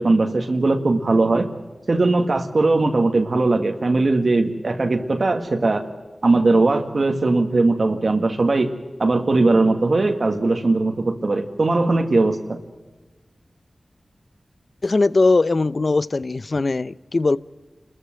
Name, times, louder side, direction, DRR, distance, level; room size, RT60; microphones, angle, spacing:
voice 1, 0.0-1.5 1.9-5.9 6.2-8.7 9.0-12.6, right 3 dB, 60° right, 1.8 m, -19 dB
voice 2, 14.8-17.4, left 3 dB, 55° left, 0.7 m, -20 dB
28.0 x 14.5 x 7.6 m
cardioid pair, 45°, 0 cm